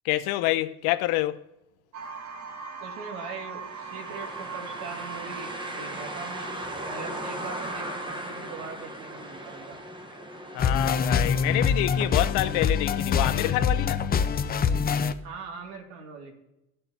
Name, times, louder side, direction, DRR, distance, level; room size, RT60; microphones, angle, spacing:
voice 1, 0.0-1.4 10.5-14.0, left 16 dB, 85° left, 0.8 m, -27 dB
sound 1, 1.9-8.1, right 5 dB, 45° right, 1.5 m, -40 dB
voice 2, 2.8-6.6 6.8-9.8 15.2-16.3, right 5 dB, 85° right, 2.6 m, -41 dB
sound 2, 3.6-13.4, right 1 dB, 15° right, 1.1 m, -39 dB
sound 3, 10.6-15.1, left 6 dB, 25° left, 0.5 m, -25 dB
17.0 x 6.7 x 2.8 m
cardioid pair, 125°, 37 cm